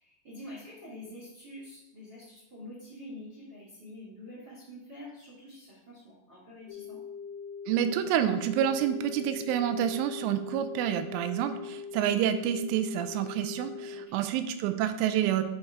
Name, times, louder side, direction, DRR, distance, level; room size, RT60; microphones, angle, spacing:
voice 1, 0.0-7.0 13.9-14.3, left 1 dB, 40° right, -7 dB, 1.8 m, -46 dB
sound 1, 6.7-14.1, left 5 dB, 85° left, 2.6 m, -41 dB
voice 2, 7.7-15.4, right 10 dB, 90° right, 9 dB, 3.1 m, -28 dB
7.1 x 5.5 x 4.6 m, 0.91 s
omnidirectional pair, 5.5 m